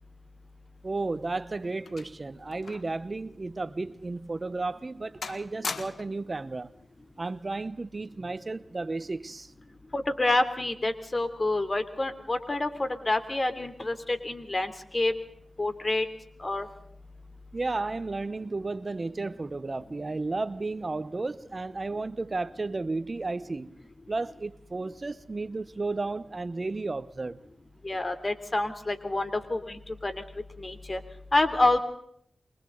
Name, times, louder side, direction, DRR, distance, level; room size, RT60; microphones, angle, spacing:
voice 1, 0.8-6.7 7.2-9.5 17.5-23.8 24.1-27.4, right 3 dB, 50° right, 1.0 m, -33 dB
sound 1, 0.9-3.0 3.3-3.5 4.1-4.3 4.7-5.0 5.2-6.3 7.3-7.5, left 4 dB, 85° left, 1.6 m, -40 dB
voice 2, 9.9-15.1 15.6-16.0 16.4-16.7 27.8-30.2 30.6-31.0 31.3-31.8, left 2 dB, 45° left, 3.3 m, -28 dB
29.0 x 24.0 x 4.0 m
cardioid pair, 40°, 0 cm